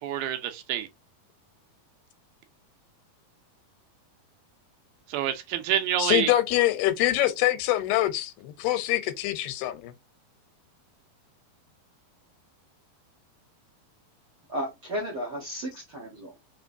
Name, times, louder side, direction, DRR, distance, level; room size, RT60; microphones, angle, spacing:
voice 1, 0.0-0.9 5.1-6.3, right 10 dB, 80° right, 2.6 m, -27 dB
voice 2, 6.0-9.9, left 15 dB, 85° left, 2.7 m, -25 dB
voice 3, 14.5-16.4, equal, 65° right, 1.3 m, -34 dB
6.0 x 3.0 x 2.6 m
omnidirectional pair, 4.4 m